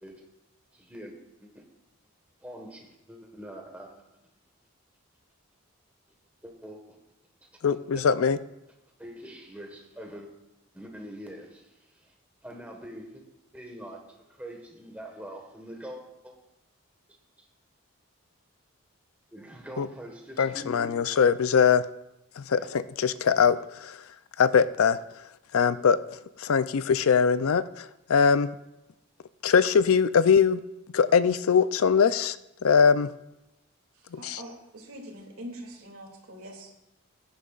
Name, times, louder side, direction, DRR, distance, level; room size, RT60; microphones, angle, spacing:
voice 1, 0.7-1.1 1.4-1.6 2.4-4.0 6.4-7.0 7.9-8.0 9.0-10.3 10.7-12.1 12.4-13.2 13.5-16.4 17.4-17.5 19.3-20.9 22.6-22.8, equal, 5° right, 1.4 m, -44 dB
voice 2, 7.6-8.4 19.8-19.9 20.4-21.9 22.4-24.0 24.4-25.0 25.5-26.0 26.4-28.5 29.4-30.6 30.9-32.4 32.6-33.1 34.1-34.4, left 6 dB, 75° left, 0.4 m, -22 dB
voice 3, 33.9-36.7, equal, 80° right, 2.6 m, -43 dB
17.0 x 10.5 x 2.5 m
head